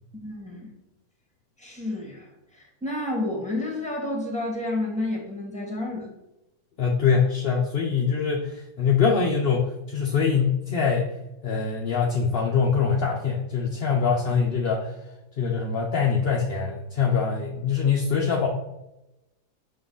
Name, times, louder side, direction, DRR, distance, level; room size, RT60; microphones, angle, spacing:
voice 1, 0.1-0.7 1.6-6.1, left 2 dB, 5° left, -1 dB, 1.8 m, -30 dB
voice 2, 6.8-11.1 11.4-14.9 15.4-18.5, left 6 dB, 50° left, -1 dB, 0.8 m, -23 dB
6.0 x 5.5 x 3.9 m, 0.92 s
omnidirectional pair, 1.7 m